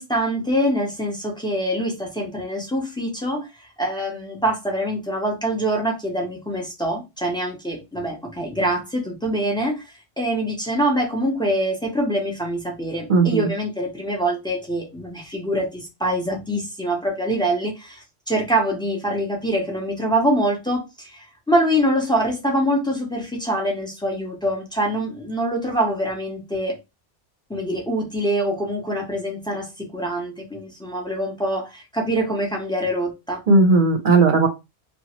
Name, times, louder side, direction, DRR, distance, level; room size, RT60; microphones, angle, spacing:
voice 1, 0.0-3.5 3.8-9.8 10.2-26.7 27.5-33.4, right 1 dB, 5° left, 0.3 m, -24 dB
voice 2, 13.1-13.5 33.5-34.5, right 3 dB, 55° right, 0.7 m, -16 dB
2.9 x 2.2 x 2.8 m
omnidirectional pair, 1.2 m